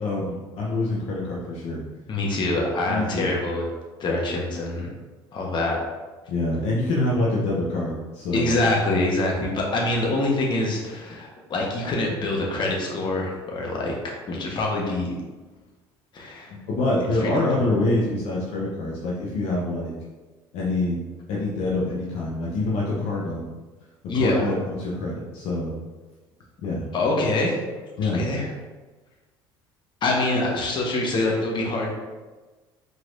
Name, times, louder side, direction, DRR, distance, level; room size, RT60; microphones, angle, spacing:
voice 1, 0.0-1.8 2.9-3.3 6.3-8.5 16.5-19.9 20.5-21.0 21.3-23.4 24.2-25.7 26.6-26.8 28.0-28.2, left 2 dB, 70° left, -4 dB, 0.9 m, -26 dB
voice 2, 2.1-3.6 4.0-4.9 5.3-5.8 8.3-15.1 16.1-16.6 17.2-17.4 24.1-24.5 26.9-28.5 30.0-31.9, left 2 dB, 45° left, -1 dB, 1.2 m, -25 dB
4.7 x 4.0 x 2.6 m, 1.2 s
supercardioid pair, 80°, 11 cm